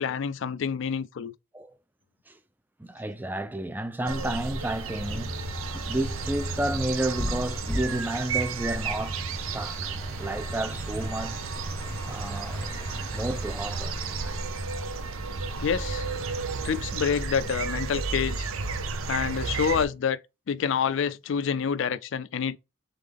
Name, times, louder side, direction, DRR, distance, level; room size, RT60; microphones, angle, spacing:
voice 1, 0.0-1.3 15.6-16.0 16.6-18.5 19.1-20.2 20.5-22.6, left 7 dB, 65° left, 0.4 m, -27 dB
voice 2, 2.8-5.4 5.9-11.5 12.0-12.6 13.1-14.4, right 1 dB, 10° right, 0.3 m, -32 dB
sound 1, 4.1-19.9, right 4 dB, 80° right, 0.6 m, -33 dB
sound 2, 5.0-17.5, left 1 dB, 10° left, 0.7 m, -39 dB
3.7 x 3.6 x 3.5 m
head